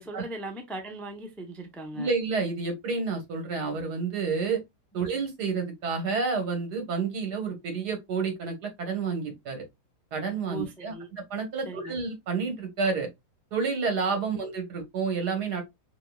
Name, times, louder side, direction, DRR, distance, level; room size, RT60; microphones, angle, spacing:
voice 1, 0.0-2.1 10.5-11.1 11.7-12.0, right 1 dB, ahead, 0.5 m, -39 dB
voice 2, 1.9-4.6 4.9-9.7 10.1-13.1 13.5-15.6, right 4 dB, 75° right, 2.0 m, -29 dB
5.9 x 2.9 x 2.3 m
omnidirectional pair, 1.7 m